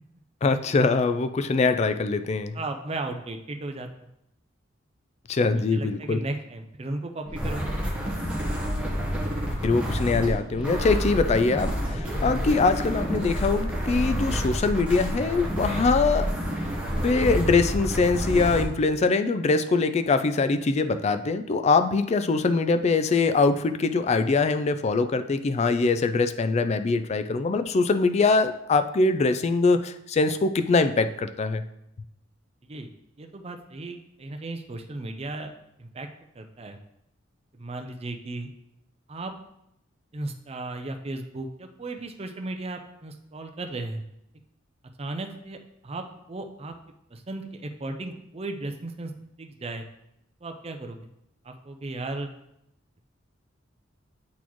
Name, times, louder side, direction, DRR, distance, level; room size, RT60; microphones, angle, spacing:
voice 1, 0.4-2.6 5.3-6.2 9.6-16.3 17.0-31.6, left 3 dB, 35° left, 10 dB, 0.3 m, -23 dB
voice 2, 2.5-3.9 5.6-7.8 32.7-32.9 33.2-35.5 35.8-36.1 36.4-36.8 37.5-38.5 39.1-39.3 40.1-44.0 45.0-45.6 45.8-46.7 47.1-49.1 49.4-49.8 50.4-51.0 51.4-52.3, right 2 dB, 30° right, 5 dB, 0.5 m, -35 dB
sound 1, 7.2-18.6, equal, 5° right, 1.1 m, -28 dB
8.4 x 4.1 x 3.0 m, 0.80 s
head